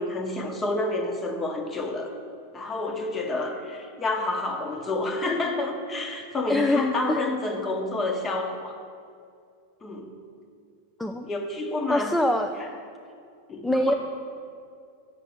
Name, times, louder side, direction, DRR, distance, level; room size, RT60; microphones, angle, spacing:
voice 1, 0.0-2.1 2.5-8.8 9.8-10.2 11.2-12.2 12.6-12.7 13.5-13.9, left 2 dB, 20° left, 4 dB, 1.0 m, -29 dB
voice 2, 6.5-6.8 7.1-7.2 11.0-11.3 11.9-12.5 13.6-13.9, left 1 dB, 5° left, 5 dB, 0.4 m, -23 dB
7.7 x 5.9 x 7.0 m, 2.3 s
figure-of-eight pair, 90°, 0 cm